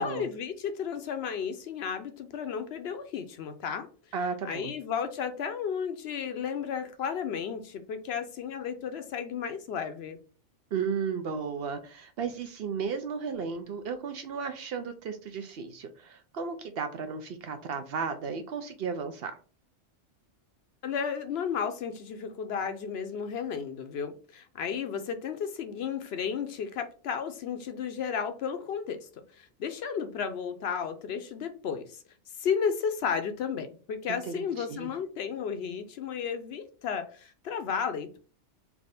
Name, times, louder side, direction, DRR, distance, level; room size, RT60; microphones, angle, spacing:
voice 1, 0.0-3.9 4.4-10.2 20.8-29.1 29.3-32.0 32.4-38.2, left 7 dB, 65° left, 8 dB, 0.7 m, -33 dB
voice 2, 4.1-4.7 10.7-19.4 34.1-34.9, right 5 dB, 65° right, 8 dB, 0.7 m, -34 dB
3.4 x 2.5 x 4.0 m, 0.37 s
omnidirectional pair, 1.2 m